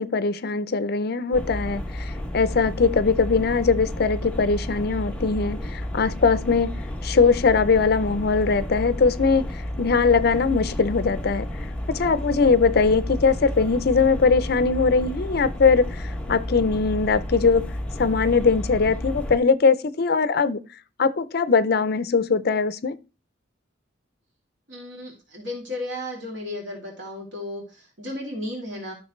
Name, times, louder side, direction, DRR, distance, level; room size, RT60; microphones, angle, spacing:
voice 1, 0.0-11.5 11.9-20.6 21.0-23.0, left 4 dB, 55° left, 0.5 m, -21 dB
sound 1, 1.3-19.4, left 1 dB, 5° left, 0.9 m, -31 dB
voice 2, 24.7-28.9, left 1 dB, 75° right, 2.8 m, -34 dB
13.0 x 6.4 x 3.2 m
head